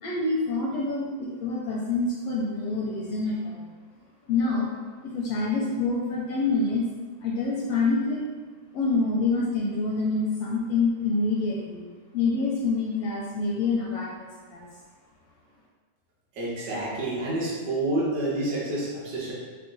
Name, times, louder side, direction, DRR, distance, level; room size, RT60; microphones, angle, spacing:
voice 1, 0.0-3.7 4.3-4.7 5.0-6.8 7.2-8.2 8.7-11.8 12.1-14.7, left 3 dB, 80° left, -3 dB, 1.5 m, -26 dB
voice 2, 16.3-19.3, right 2 dB, 70° right, -6 dB, 0.9 m, -28 dB
6.4 x 2.2 x 3.9 m, 1.4 s
omnidirectional pair, 3.4 m